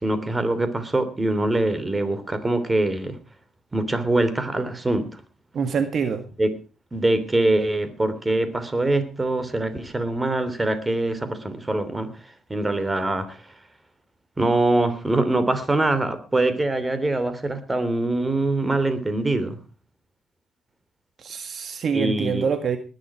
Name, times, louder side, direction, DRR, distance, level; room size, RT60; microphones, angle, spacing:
voice 1, 0.0-3.2 3.7-5.2 6.4-6.5 6.9-13.5 14.4-19.6 21.9-22.5, right 2 dB, 20° right, 12 dB, 3.1 m, -23 dB
voice 2, 5.5-6.3 21.2-22.8, right 6 dB, 55° right, 9 dB, 1.8 m, -25 dB
20.0 x 11.0 x 4.8 m, 0.34 s
cardioid pair, 90°, 0 cm